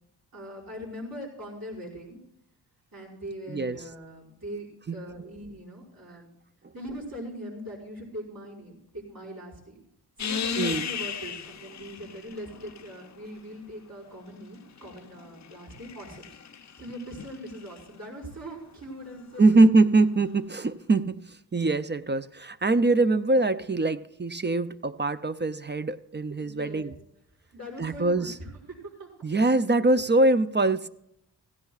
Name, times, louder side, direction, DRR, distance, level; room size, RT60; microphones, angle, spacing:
voice 1, 0.3-2.2 2.9-6.3 6.7-9.8 10.2-16.4 16.8-19.7 26.4-26.9 27.5-28.3 28.7-29.3, equal, 55° right, -5 dB, 5.6 m, -41 dB
voice 2, 3.5-3.8 4.9-5.0 10.6-10.9 19.4-26.9 27.8-28.4 29.2-30.9, right 2 dB, 25° right, 12 dB, 0.4 m, -23 dB
sound 1, 10.2-13.3 14.4-17.8 20.2-20.3, left 7 dB, 40° left, 0.5 m, -36 dB
16.0 x 16.0 x 2.4 m, 0.81 s
wide cardioid pair, 110°, 42 cm